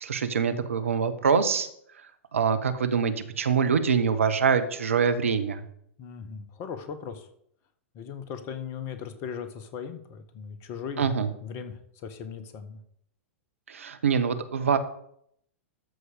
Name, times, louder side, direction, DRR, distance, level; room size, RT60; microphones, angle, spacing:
voice 1, 0.0-1.7 2.3-5.6 11.0-11.3 13.7-14.8, right 6 dB, 70° right, 10 dB, 1.1 m, -24 dB
voice 2, 6.0-7.3 7.9-11.1 11.4-12.8, left 7 dB, 40° left, 9 dB, 1.4 m, -38 dB
13.0 x 4.9 x 6.6 m, 0.69 s
figure-of-eight pair, 100°, 7 cm